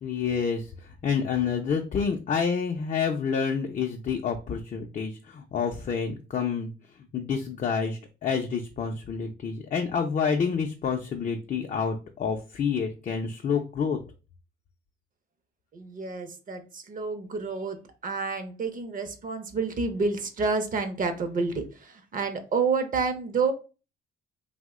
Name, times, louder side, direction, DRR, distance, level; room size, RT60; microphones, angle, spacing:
voice 1, 0.0-6.7 7.1-14.0, left 6 dB, 40° left, 3 dB, 0.4 m, -28 dB
voice 2, 15.7-17.8 18.0-23.5, right 4 dB, 45° right, 8 dB, 0.6 m, -29 dB
2.8 x 2.1 x 3.5 m, 0.33 s
cardioid pair, 90°, 20 cm